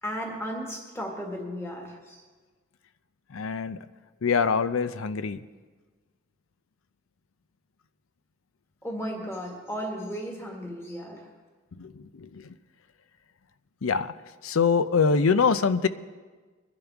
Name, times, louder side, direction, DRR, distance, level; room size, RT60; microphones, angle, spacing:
voice 1, 0.0-2.2 8.8-11.3, equal, 15° left, 0 dB, 1.8 m, -35 dB
voice 2, 3.3-3.8 4.2-5.4 11.8-11.9 12.2-12.4 13.8-14.1 14.4-15.9, left 5 dB, 80° left, 13 dB, 0.6 m, -24 dB
22.0 x 11.5 x 3.5 m, 1.4 s
head